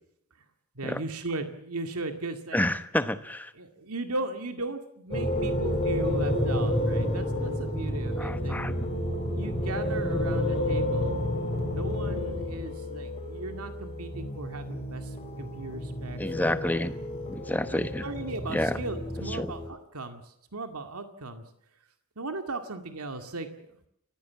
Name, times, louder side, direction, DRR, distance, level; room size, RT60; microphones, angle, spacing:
voice 1, 0.8-2.6 3.6-8.6 9.3-11.3 11.7-16.7 18.0-21.4 22.2-23.7, right 2 dB, 85° right, 7 dB, 2.2 m, -37 dB
voice 2, 2.5-3.5 8.2-8.9 16.2-17.0 17.3-18.0 18.5-18.8 19.3-19.5, left 1 dB, 10° left, 12 dB, 1.0 m, -29 dB
sound 1, 5.1-19.7, left 1 dB, 25° left, 4.8 m, -30 dB
29.0 x 15.5 x 7.3 m, 0.76 s
head